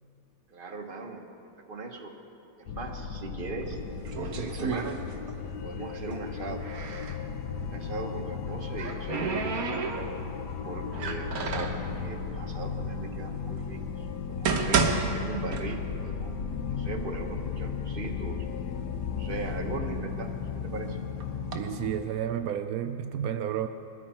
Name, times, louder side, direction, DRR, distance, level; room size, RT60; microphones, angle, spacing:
voice 1, 0.5-1.3 1.7-2.1 2.7-3.8 4.0-5.0 5.6-6.7 7.6-9.9 10.6-16.4 16.7-18.4 19.1-21.0, right 3 dB, 30° right, 3 dB, 1.3 m, -39 dB
sound 1, 2.7-22.0, left 6 dB, 65° left, 1.3 m, -35 dB
sound 2, 3.6-5.5 5.8-7.2 8.3-10.4 10.9-11.8 12.6-12.7 13.4-13.5 14.1-16.1 16.4-16.5 17.2-17.3 17.7-18.4 18.9-20.6 21.2-21.6, right 5 dB, 55° right, 1.5 m, -31 dB
voice 2, 21.5-23.7, right 9 dB, 80° right, 9 dB, 0.8 m, -31 dB
21.5 x 15.0 x 4.4 m, 2.9 s
omnidirectional pair, 2.1 m